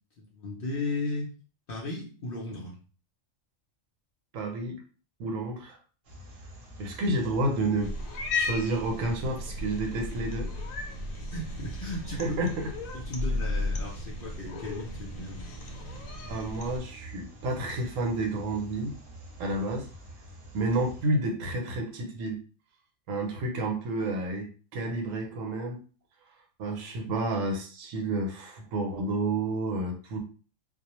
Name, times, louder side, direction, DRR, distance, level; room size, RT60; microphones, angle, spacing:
voice 1, 0.2-1.3 1.7-2.8 11.3-12.4 12.9-15.5, left 2 dB, 55° left, -2 dB, 0.6 m, -35 dB
voice 2, 4.3-4.8 5.2-5.8 6.8-7.9 8.3-10.5 12.2-12.7 16.2-19.0 19.4-19.9 20.5-22.4 23.1-25.8 26.6-30.2, right 2 dB, 75° right, 2 dB, 1.0 m, -30 dB
sound 1, 6.0-21.1, right 1 dB, 50° right, 0.7 m, -47 dB
Cat, 7.8-16.8, left 2 dB, 85° left, 1.0 m, -35 dB
2.3 x 2.0 x 2.9 m, 0.37 s
omnidirectional pair, 1.4 m